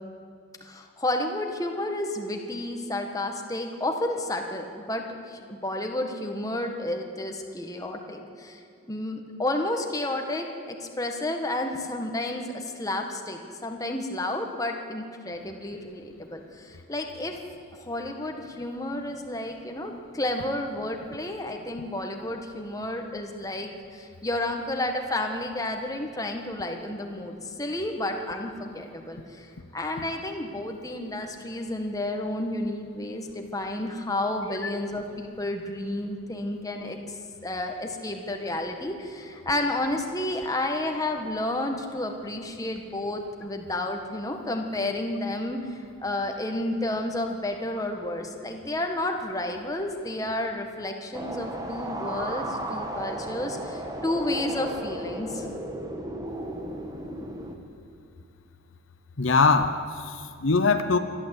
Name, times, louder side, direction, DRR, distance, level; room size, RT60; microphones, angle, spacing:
voice 1, 0.6-8.6 8.9-17.4 17.8-29.5 29.7-37.0 37.4-45.7 46.0-55.5, left 1 dB, 15° left, 3 dB, 1.6 m, -31 dB
sound 1, 51.1-57.5, right 1 dB, 20° right, 1.5 m, -34 dB
voice 2, 59.2-61.0, left 4 dB, 70° left, 9 dB, 0.9 m, -22 dB
27.5 x 11.5 x 8.4 m, 2.3 s
head